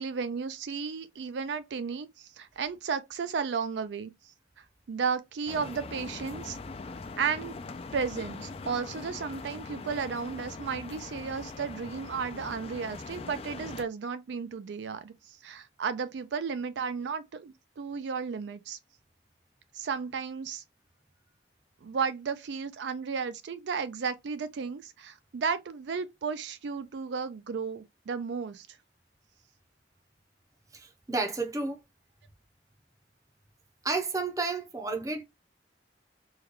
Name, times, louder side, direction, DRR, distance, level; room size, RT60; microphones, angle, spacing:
voice 1, 0.0-4.1 4.9-6.6 7.2-7.6 7.9-18.8 19.7-20.6 21.8-28.7, right 5 dB, 75° right, 0.4 m, -34 dB
sound 1, 5.5-13.8, left 3 dB, 35° left, 0.3 m, -42 dB
voice 2, 30.7-31.8 33.8-35.2, right 3 dB, 20° right, 0.5 m, -31 dB
3.6 x 2.2 x 2.9 m
head